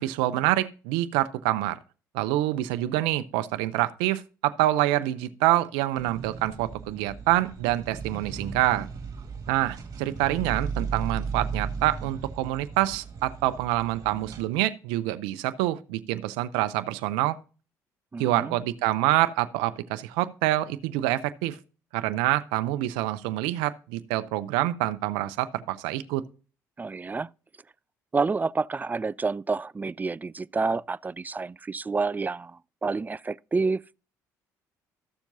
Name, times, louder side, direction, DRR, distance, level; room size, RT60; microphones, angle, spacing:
voice 1, 0.0-1.8 2.1-8.9 9.5-17.4 18.2-21.6 21.9-26.2, right 15 dB, 80° right, 0.5 m, -26 dB
sound 1, 6.0-14.5, right 5 dB, 45° right, 1.9 m, -36 dB
voice 2, 18.1-18.6 26.8-27.3 28.1-34.0, right 4 dB, 20° right, 0.3 m, -29 dB
13.5 x 7.1 x 2.7 m
hypercardioid pair, 60°, 8 cm